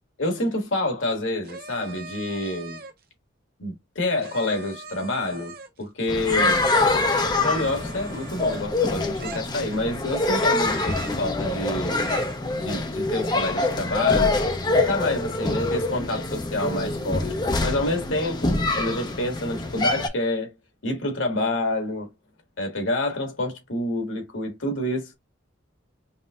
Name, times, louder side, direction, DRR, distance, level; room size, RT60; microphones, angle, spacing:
voice 1, 0.2-2.8 3.6-6.6 7.4-12.0 12.5-14.4 14.7-17.3 17.6-20.5 20.8-22.1 22.6-25.1, left 1 dB, 85° left, 1.8 m, -28 dB
sound 1, 1.4-3.0 4.2-5.8 7.3-8.8 9.2-9.9 10.3-11.3 11.9-12.5, right 4 dB, 50° right, 0.8 m, -41 dB
sound 2, 6.1-20.1, left 2 dB, 20° left, 0.7 m, -25 dB
5.4 x 2.7 x 2.4 m
head